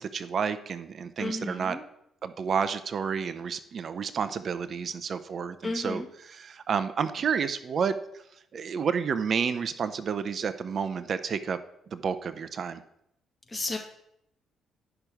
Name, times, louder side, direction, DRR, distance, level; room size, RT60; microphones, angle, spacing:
voice 1, 0.0-1.8 2.2-8.2 8.5-11.6 11.9-12.8, right 6 dB, 50° right, 12 dB, 0.6 m, -30 dB
voice 2, 1.2-1.8 5.6-6.1 13.5-13.8, left 2 dB, 30° left, 1 dB, 1.9 m, -33 dB
9.7 x 6.0 x 3.4 m, 0.78 s
hypercardioid pair, 45°, 0 cm